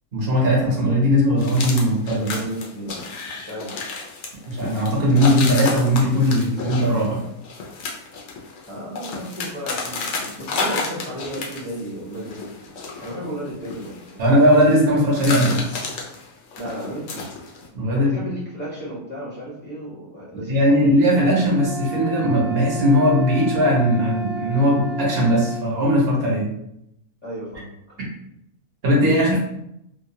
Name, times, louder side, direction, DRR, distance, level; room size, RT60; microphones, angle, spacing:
voice 1, 0.1-2.3 4.5-7.2 14.2-15.6 17.7-18.1 20.4-26.5 28.8-29.4, equal, 50° right, -3 dB, 0.8 m, -18 dB
sound 1, 1.4-11.9 12.1-14.8 15.1-17.7, left 4 dB, 65° left, 0.7 m, -31 dB
voice 2, 2.2-3.0 3.4-3.9 8.6-12.7 13.0-14.2 16.6-17.3 17.9-20.8 27.2-28.0, right 1 dB, 10° left, -7 dB, 0.8 m, -34 dB
sound 2, 21.5-25.7, right 5 dB, 70° right, 1.3 m, -32 dB
2.8 x 2.2 x 2.7 m, 0.79 s
omnidirectional pair, 1.7 m